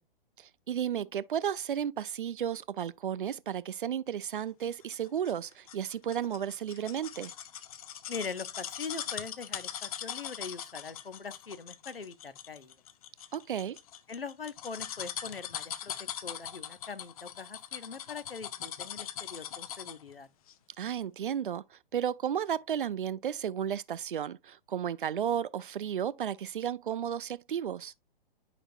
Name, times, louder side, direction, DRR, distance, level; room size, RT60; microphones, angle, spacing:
voice 1, 0.4-7.3 13.3-13.8 20.8-27.9, right 9 dB, 60° right, 0.5 m, -33 dB
sound 1, 4.9-20.1 20.5-20.6, left 10 dB, 40° left, 0.7 m, -41 dB
voice 2, 8.1-12.7 14.1-15.9 16.2-20.3, left 5 dB, 80° left, 0.9 m, -42 dB
10.0 x 5.3 x 2.5 m
figure-of-eight pair, 115°, 29 cm